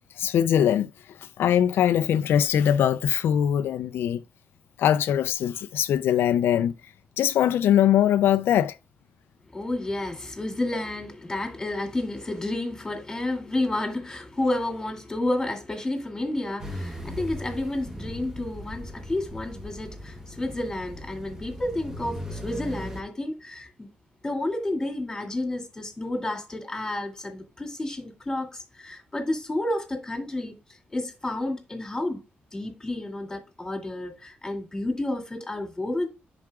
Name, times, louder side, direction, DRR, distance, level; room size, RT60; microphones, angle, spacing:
voice 1, 0.2-0.9 1.2-4.2 4.8-8.8, left 10 dB, 85° left, 0.3 m, -22 dB
voice 2, 9.5-23.9 24.2-30.5 30.9-32.2 32.5-36.1, left 1 dB, 15° left, 2.3 m, -30 dB
sound 1, 16.6-23.0, equal, 15° right, 1.2 m, -38 dB
10.5 x 4.8 x 2.3 m
cardioid pair, 125°, 4 cm